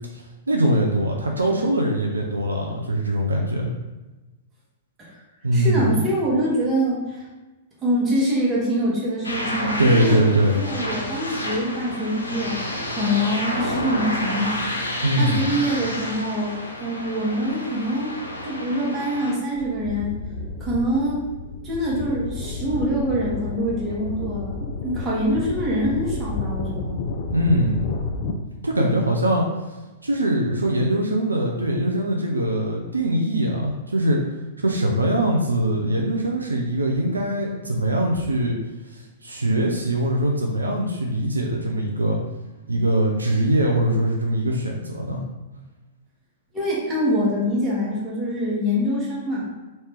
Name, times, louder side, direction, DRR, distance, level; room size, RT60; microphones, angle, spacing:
voice 1, 0.5-3.7 5.4-6.0 9.8-10.5 15.0-15.4 27.3-27.8 28.6-29.5 30.0-34.2 34.6-38.6 38.9-42.2 42.7-45.2, right 1 dB, 80° right, 0 dB, 0.5 m, -22 dB
voice 2, 5.5-7.2 7.8-14.6 15.2-18.2 18.4-20.2 20.6-21.3 21.6-26.9 46.5-49.5, equal, 20° right, -6 dB, 1.3 m, -25 dB
sound 1, 9.2-19.3, left 1 dB, 80° left, 0.6 m, -30 dB
sound 2, 19.6-28.3, left 3 dB, 40° left, 0.4 m, -31 dB
3.2 x 2.7 x 3.4 m, 1.1 s
figure-of-eight pair, 105°, 0 cm